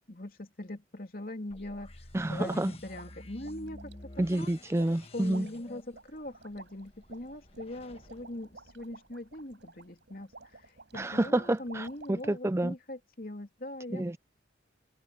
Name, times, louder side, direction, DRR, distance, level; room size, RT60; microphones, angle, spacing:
voice 1, 0.1-3.9 4.3-4.5 5.1-14.0, left 1 dB, 50° left, 3.0 m, -41 dB
sound 1, 1.5-9.4, left 1 dB, 35° left, 1.5 m, -51 dB
voice 2, 2.1-2.7 4.2-5.5 10.9-12.8 13.9-14.2, right 1 dB, 15° right, 0.4 m, -29 dB
sound 2, 2.5-12.4, right 3 dB, 80° right, 5.5 m, -53 dB
head